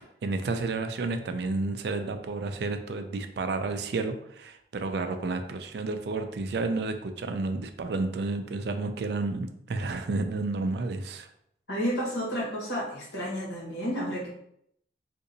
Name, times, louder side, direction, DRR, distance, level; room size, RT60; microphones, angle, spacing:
voice 1, 0.2-11.3, right 3 dB, 65° right, 7 dB, 0.4 m, -31 dB
voice 2, 11.7-14.3, equal, 70° left, -4 dB, 1.3 m, -31 dB
3.8 x 2.5 x 2.7 m, 0.72 s
head